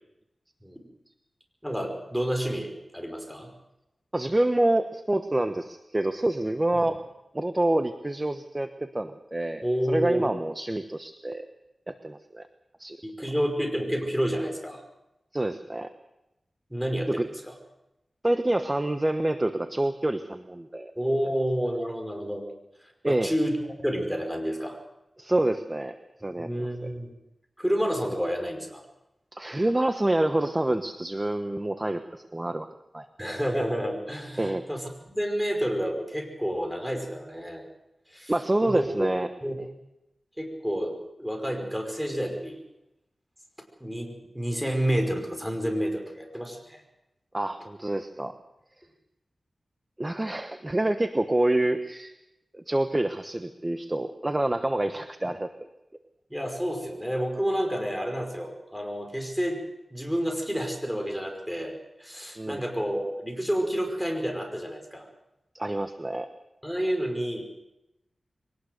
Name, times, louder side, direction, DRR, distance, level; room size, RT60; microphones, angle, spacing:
voice 1, 1.6-3.5 6.8-6.9 9.6-10.3 13.0-14.8 16.7-17.5 21.0-22.4 23.1-23.6 23.8-24.8 26.4-27.1 27.6-28.8 33.2-37.6 38.1-38.3 38.6-39.1 39.4-39.6 40.4-42.6 43.8-46.8 56.3-59.6 59.9-65.1 66.6-67.4, equal, 5° right, 3 dB, 5.4 m, -29 dB
voice 2, 4.1-7.0 7.3-11.5 11.9-12.5 12.8-13.0 15.3-15.9 17.1-17.3 18.2-20.9 23.0-23.3 25.2-25.9 26.2-26.9 29.3-32.7 32.9-33.1 34.4-34.6 38.3-39.3 47.3-48.3 50.0-52.1 52.5-55.5 62.4-62.6 65.5-66.3, right 1 dB, 25° right, 8 dB, 1.1 m, -27 dB
23.0 x 18.5 x 6.6 m, 0.89 s
wide cardioid pair, 75°, 0 cm